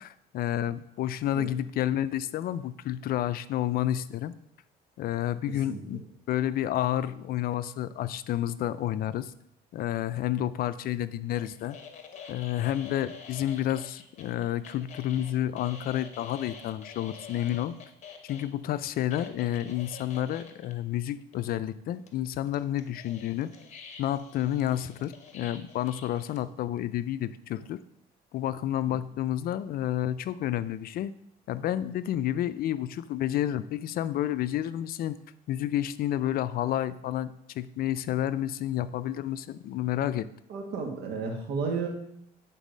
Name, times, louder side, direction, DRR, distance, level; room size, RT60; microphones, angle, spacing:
voice 1, 0.0-4.3 5.0-6.0 6.3-9.3 9.7-11.8 12.3-17.7 18.2-23.5 24.0-27.8 28.3-31.1 31.5-35.2 35.5-40.3, left 12 dB, 60° left, 15 dB, 0.4 m, -30 dB
sound 1, 11.3-18.5 19.1-20.7 21.3-21.4 22.1-26.4, left 6 dB, 45° left, 1.1 m, -47 dB
voice 2, 40.5-41.9, right 5 dB, 75° right, 3 dB, 1.7 m, -32 dB
9.1 x 4.1 x 5.2 m, 0.74 s
cardioid pair, 110°, 17 cm